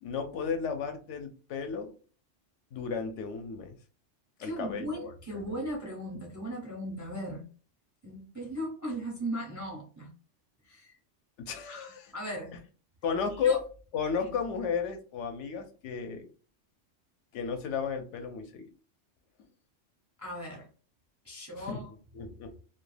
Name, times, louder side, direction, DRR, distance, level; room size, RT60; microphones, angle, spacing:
voice 1, 0.0-1.9 2.7-3.8 4.4-5.4 11.4-12.1 13.0-13.6 13.9-16.3 17.3-18.7 21.6-21.8 22.1-22.5, left 6 dB, 75° left, 6 dB, 0.9 m, -33 dB
voice 2, 4.4-7.5 8.0-10.1 10.6-10.9 11.7-12.5 13.4-13.6 14.2-14.3 20.2-20.7 21.2-21.9, equal, 25° right, -1 dB, 0.4 m, -37 dB
2.3 x 2.2 x 3.1 m, 0.39 s
omnidirectional pair, 1.3 m